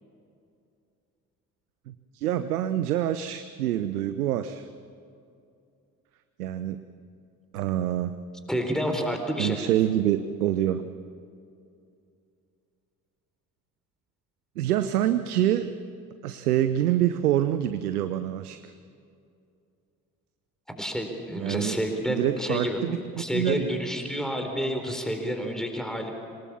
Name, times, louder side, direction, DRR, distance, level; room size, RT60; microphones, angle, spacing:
voice 1, 1.9-4.7 6.4-6.9 7.5-8.1 9.4-10.8 14.6-15.7 16.2-18.7 21.4-21.8 22.1-23.0 23.3-23.6, right 12 dB, 80° right, 12 dB, 0.7 m, -26 dB
voice 2, 8.5-9.6 20.7-26.1, equal, ahead, 4 dB, 4.1 m, -29 dB
26.0 x 19.5 x 7.3 m, 2.5 s
figure-of-eight pair, 45°, 45 cm